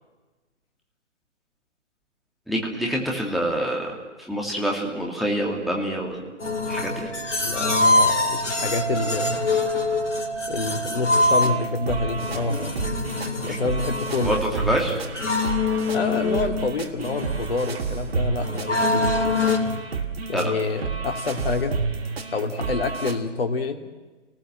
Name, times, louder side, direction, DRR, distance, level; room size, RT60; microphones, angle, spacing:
voice 1, 2.5-6.3 6.7-7.1 13.5-13.6 14.2-14.9 20.3-20.5, equal, ahead, -2 dB, 2.5 m, -26 dB
sound 1, 6.4-19.8, left 2 dB, 70° left, 3.6 m, -25 dB
voice 2, 7.4-9.7 10.5-12.6 13.5-14.4 15.9-19.1 20.3-21.8 22.3-23.9, left 3 dB, 50° left, 4 dB, 2.7 m, -27 dB
sound 2, 11.2-23.2, right 5 dB, 55° right, 2.5 m, -31 dB
29.5 x 19.5 x 7.8 m, 1.2 s
figure-of-eight pair, 140°, 37 cm